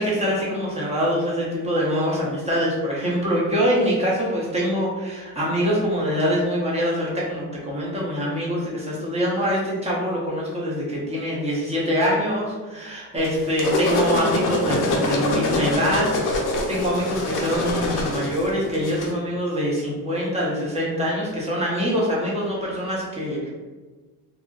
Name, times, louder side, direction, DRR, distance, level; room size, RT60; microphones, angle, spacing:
voice 1, 0.0-23.5, equal, 15° right, -5 dB, 0.7 m, -24 dB
sound 1, 13.2-19.1, left 2 dB, 50° left, 0.6 m, -24 dB
2.5 x 2.1 x 3.6 m, 1.3 s
cardioid pair, 155°, 41 cm